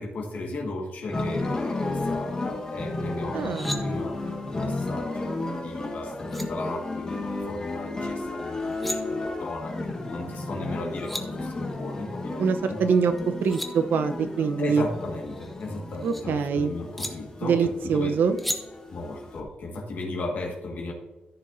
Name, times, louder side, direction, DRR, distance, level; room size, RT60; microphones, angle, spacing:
voice 1, 0.0-4.2 4.5-9.8 10.1-12.8 14.6-18.1 18.9-20.9, left 2 dB, 55° left, -1 dB, 1.8 m, -36 dB
sound 1, 1.1-19.4, left 2 dB, 20° left, 1.3 m, -33 dB
sound 2, 3.3-3.8 5.8-5.9 6.3-6.5 8.5-9.0 10.6-10.7 10.9-11.2 13.2-13.7 15.2-16.2 17.0-17.1 18.4-18.6, left 1 dB, 5° left, 0.9 m, -34 dB
voice 2, 3.3-3.9 12.4-14.8 16.0-16.7 17.4-18.4, right 5 dB, 80° right, 9 dB, 0.8 m, -24 dB
14.0 x 6.6 x 2.7 m, 1.1 s
wide cardioid pair, 160°, 3 cm